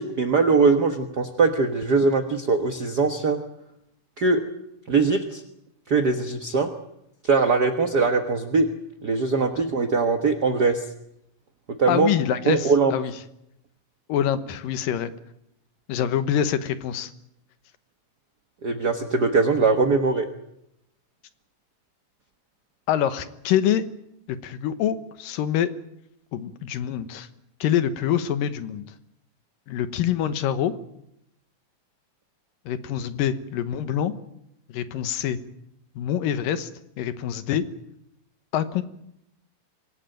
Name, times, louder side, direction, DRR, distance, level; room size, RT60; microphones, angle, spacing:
voice 1, 0.0-3.4 4.2-4.4 4.9-5.4 5.9-6.7 7.2-8.7 9.0-10.8 11.8-12.1 12.5-12.9 18.6-20.3, right 4 dB, 55° right, 6 dB, 1.1 m, -21 dB
voice 2, 11.9-13.1 14.1-15.1 15.9-17.1 22.9-23.8 24.3-25.7 26.3-27.3 27.6-28.8 29.7-30.7 32.7-34.1 34.7-35.4 36.0-36.7 37.0-37.6 38.5-38.8, left 10 dB, 85° left, 11 dB, 2.9 m, -25 dB
25.5 x 17.5 x 9.1 m, 0.80 s
omnidirectional pair, 3.9 m